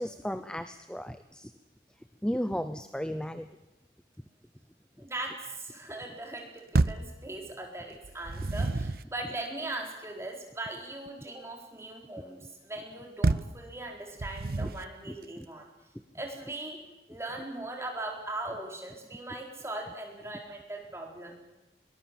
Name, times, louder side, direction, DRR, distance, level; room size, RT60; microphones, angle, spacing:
voice 1, 0.0-1.5 2.2-3.5 15.1-15.4, equal, 5° left, 11 dB, 0.7 m, -34 dB
voice 2, 5.0-15.7 16.1-16.8 17.1-21.3, right 2 dB, 15° right, 1 dB, 4.2 m, -39 dB
sound 1, 6.7-7.1 8.0-9.1 13.2-13.6 14.2-14.9, right 2 dB, 55° right, 0.7 m, -28 dB
22.0 x 20.0 x 7.5 m, 1.0 s
head